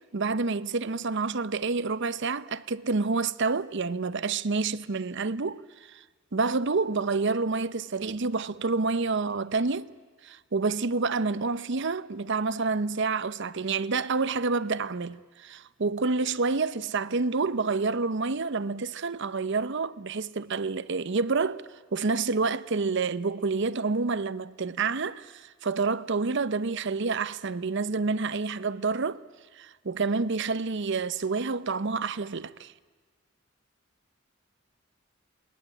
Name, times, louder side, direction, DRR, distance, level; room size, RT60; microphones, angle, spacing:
voice 1, 0.1-5.6 5.9-6.0 6.3-9.9 10.2-21.6 21.9-29.2 29.6-32.7, right 4 dB, 65° right, 0.8 m, -28 dB
28.5 x 21.0 x 8.9 m
head